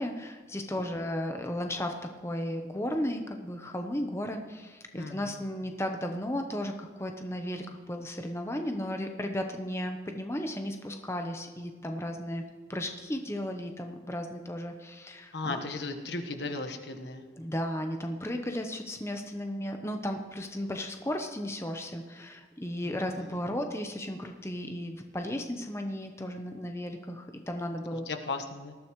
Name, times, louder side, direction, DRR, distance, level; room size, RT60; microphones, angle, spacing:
voice 1, 0.0-1.9 2.2-12.4 12.7-15.6 17.4-28.1, left 1 dB, 15° left, 4 dB, 0.9 m, -35 dB
voice 2, 4.9-5.4 15.3-17.3 22.8-23.3 28.1-28.7, left 3 dB, 85° left, 7 dB, 1.3 m, -36 dB
19.5 x 13.0 x 3.1 m, 1.5 s
head